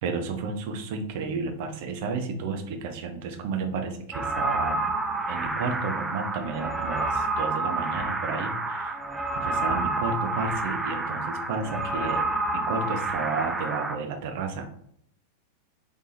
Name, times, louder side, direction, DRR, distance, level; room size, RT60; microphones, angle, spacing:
voice 1, 0.0-4.9 5.3-9.0 9.3-12.3 12.5-14.7, right 4 dB, 50° right, 5 dB, 0.6 m, -32 dB
sound 1, 4.1-14.0, right 2 dB, 10° right, 0.4 m, -29 dB
3.4 x 3.3 x 2.7 m, 0.66 s
figure-of-eight pair, 90°, 0 cm